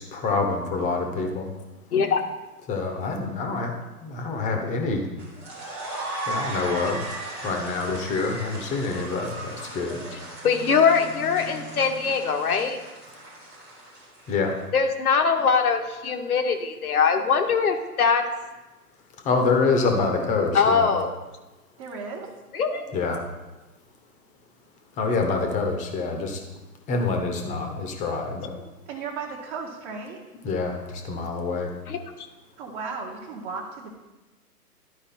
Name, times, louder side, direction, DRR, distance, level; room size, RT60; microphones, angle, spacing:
voice 1, 0.0-1.5 2.7-3.7 4.0-5.1 6.3-7.0 7.4-10.0 14.3-14.5 19.2-20.9 22.9-23.2 25.0-26.4 26.9-28.5 30.4-31.7, left 4 dB, 15° left, 3 dB, 0.9 m, -26 dB
sound 1, 5.2-14.5, right 2 dB, 5° right, 0.4 m, -37 dB
voice 2, 10.1-12.8 14.7-18.2 20.5-21.1 22.5-22.9 31.9-32.0, left 5 dB, 65° left, 6 dB, 1.3 m, -22 dB
voice 3, 21.8-22.3 28.9-30.2 32.6-33.9, right 5 dB, 25° right, -4 dB, 1.0 m, -35 dB
11.5 x 4.9 x 4.3 m, 1.1 s
hypercardioid pair, 130°, 47 cm